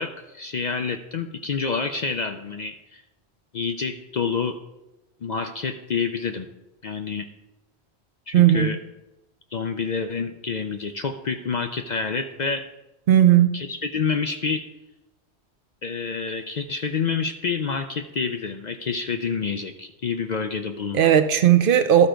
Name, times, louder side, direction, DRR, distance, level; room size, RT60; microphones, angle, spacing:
voice 1, 0.0-3.0 3.5-4.6 5.2-6.5 6.8-7.3 8.3-8.8 9.5-12.6 13.5-14.6 15.8-21.1, left 5 dB, 55° left, 6 dB, 0.5 m, -28 dB
voice 2, 8.3-8.8 13.1-13.6 20.9-22.1, right 10 dB, 60° right, 9 dB, 0.6 m, -16 dB
12.0 x 4.5 x 5.0 m, 0.97 s
omnidirectional pair, 1.1 m